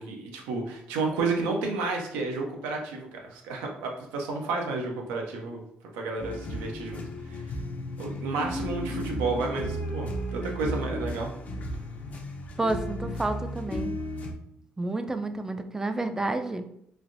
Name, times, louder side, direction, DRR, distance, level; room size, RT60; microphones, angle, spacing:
voice 1, 0.0-5.6 5.9-7.0 7.3-7.5 8.0-11.3, right 3 dB, 90° right, 1 dB, 0.6 m, -31 dB
sound 1, 6.2-14.3, equal, 50° left, 0.6 m, -34 dB
voice 2, 12.6-13.9 14.8-16.8, right 2 dB, 15° right, 8 dB, 0.3 m, -30 dB
3.2 x 2.4 x 2.5 m, 0.71 s
supercardioid pair, 75°, 4 cm